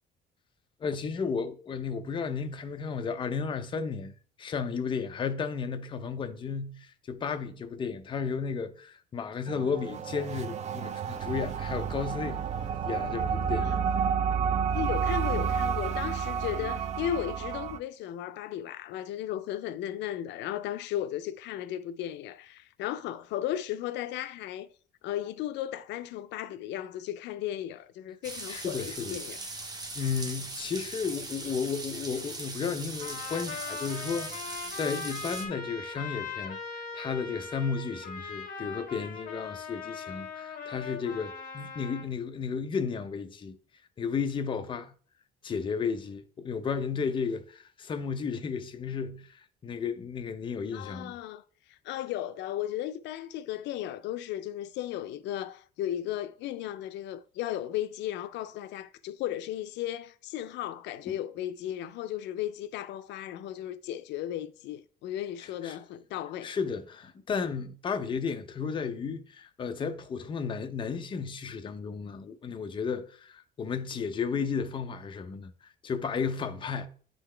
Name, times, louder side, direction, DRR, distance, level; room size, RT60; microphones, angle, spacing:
voice 1, 0.8-4.1 4.4-12.4 12.9-13.8 28.5-29.2 30.0-43.6 44.0-44.9 45.4-51.2 61.1-61.2 65.4-65.8 66.4-76.9, left 5 dB, 25° left, 0.6 m, -33 dB
sound 1, 9.5-17.8, right 7 dB, 40° right, 0.4 m, -30 dB
voice 2, 13.5-13.8 14.7-24.7 25.0-29.4 50.7-51.4 51.7-66.5, left 12 dB, 75° left, 0.4 m, -35 dB
sound 2, 28.2-35.5, right 2 dB, 20° right, 0.9 m, -40 dB
Trumpet, 33.0-42.1, left 5 dB, 50° left, 1.8 m, -40 dB
9.2 x 3.9 x 3.3 m
cardioid pair, 150°, 18 cm